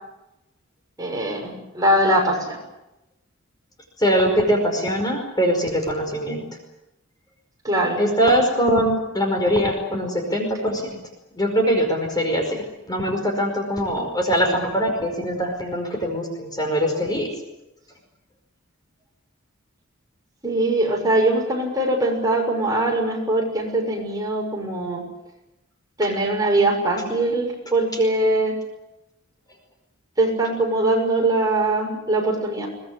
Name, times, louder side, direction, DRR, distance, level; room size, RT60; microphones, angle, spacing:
voice 1, 1.0-2.6 7.6-8.0 20.4-25.0 26.0-28.5 30.2-32.7, right 1 dB, 20° right, 0 dB, 6.6 m, -21 dB
voice 2, 4.0-6.4 8.0-10.9 11.4-17.3, equal, 20° left, 3 dB, 5.0 m, -22 dB
23.0 x 20.5 x 9.7 m, 0.95 s
head